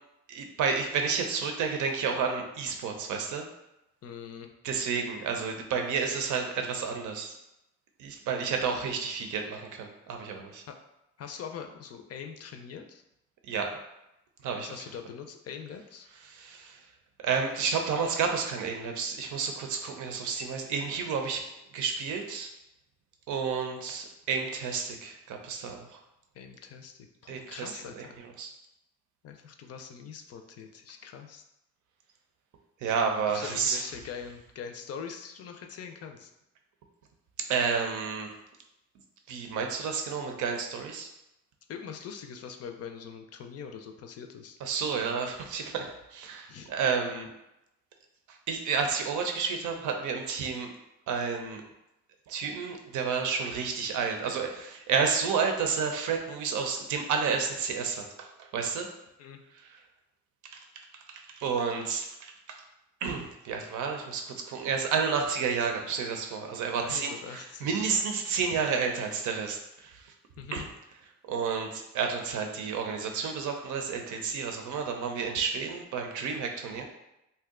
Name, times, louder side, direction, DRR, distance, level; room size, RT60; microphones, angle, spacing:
voice 1, 0.3-3.5 4.6-7.3 8.0-10.6 13.5-13.8 14.4-14.7 16.2-16.8 17.2-21.4 21.7-22.5 23.3-26.0 27.3-28.1 28.4-28.5 32.8-33.8 37.5-38.3 39.3-41.1 44.6-47.3 48.5-50.7 51.1-51.6 52.3-58.9 59.6-59.8 60.5-62.6 63.0-70.1 70.5-70.7 71.2-76.8, right 5 dB, 75° right, 4 dB, 0.6 m, -31 dB
voice 2, 4.0-4.5 10.7-10.8 11.2-13.0 14.6-16.1 26.3-28.1 29.2-31.4 33.3-36.3 41.7-44.6 46.5-46.7 59.2-59.4 66.8-67.9 70.4-70.6, left 7 dB, 55° left, 5 dB, 0.5 m, -43 dB
2.7 x 2.2 x 3.6 m, 0.88 s
cardioid pair, 90°, 30 cm